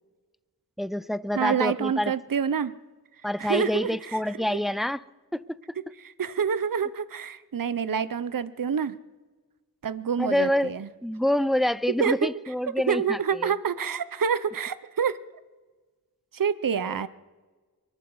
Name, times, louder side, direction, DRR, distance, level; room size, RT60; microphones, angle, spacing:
voice 1, 0.8-2.1 3.2-5.0 5.3-5.8 10.2-10.7 11.0-13.5 16.8-17.0, left 1 dB, ahead, 17 dB, 0.4 m, -27 dB
voice 2, 1.4-2.7 3.4-4.2 4.5-4.6 6.0-9.0 9.8-10.9 12.0-12.4 12.9-15.2 16.3-17.1, right 7 dB, 65° right, 15 dB, 0.7 m, -27 dB
23.5 x 12.0 x 4.7 m, 1.3 s
wide cardioid pair, 55°, 35 cm